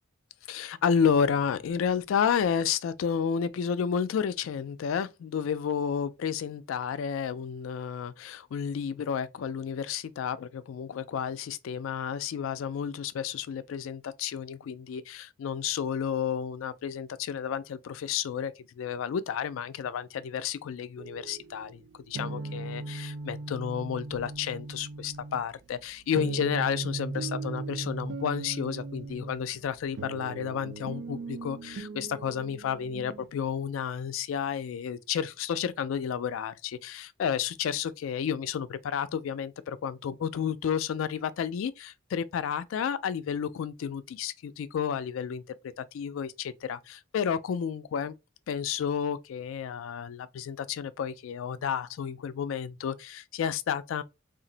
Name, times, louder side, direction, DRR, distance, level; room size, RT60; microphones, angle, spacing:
voice 1, 0.5-48.1 48.5-54.0, left 7 dB, 85° left, 0.3 m, -31 dB
sound 1, 21.0-33.3, right 3 dB, 60° right, 0.4 m, -38 dB
2.4 x 2.0 x 3.8 m
head